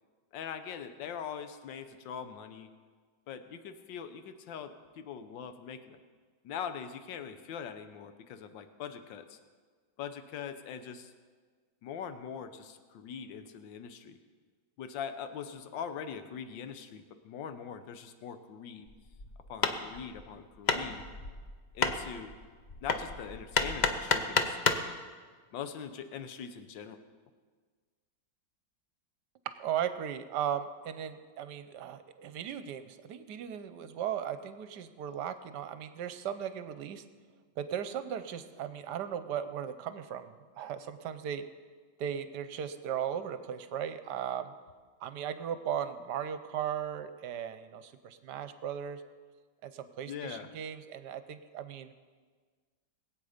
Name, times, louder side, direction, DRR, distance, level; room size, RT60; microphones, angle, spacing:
voice 1, 0.3-2.7 3.3-6.0 6.4-9.4 10.0-11.1 11.8-14.2 14.8-18.9 19.5-21.0 21.7-22.3 22.8-24.6 25.5-27.0 50.1-50.5, left 7 dB, 85° left, 10 dB, 1.5 m, -42 dB
Hammer, 18.9-24.9, left 4 dB, 65° left, 0.4 m, -31 dB
voice 2, 29.6-37.1 37.6-41.4 42.0-44.5 45.0-49.0 49.6-51.9, right 9 dB, 70° right, 11 dB, 1.3 m, -37 dB
21.0 x 8.4 x 5.0 m, 1.5 s
omnidirectional pair, 2.0 m